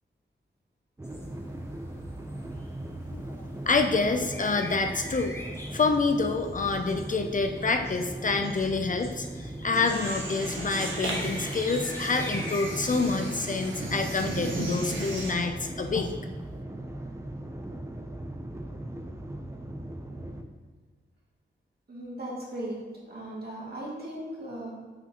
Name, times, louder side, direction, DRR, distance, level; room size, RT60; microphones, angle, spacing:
sound 1, 1.0-13.1, left 1 dB, 10° left, 0.9 m, -45 dB
sound 2, 1.0-20.4, right 1 dB, 15° right, 0.5 m, -39 dB
voice 1, 3.7-5.3 5.7-9.3 9.6-16.1, left 4 dB, 40° left, 5 dB, 0.4 m, -27 dB
sound 3, 9.8-15.3, right 1 dB, 75° right, 1.5 m, -35 dB
voice 2, 21.9-22.8 23.1-24.7, right 1 dB, 50° right, -5 dB, 2.2 m, -37 dB
7.8 x 5.9 x 2.9 m, 1.4 s
wide cardioid pair, 115°, 20 cm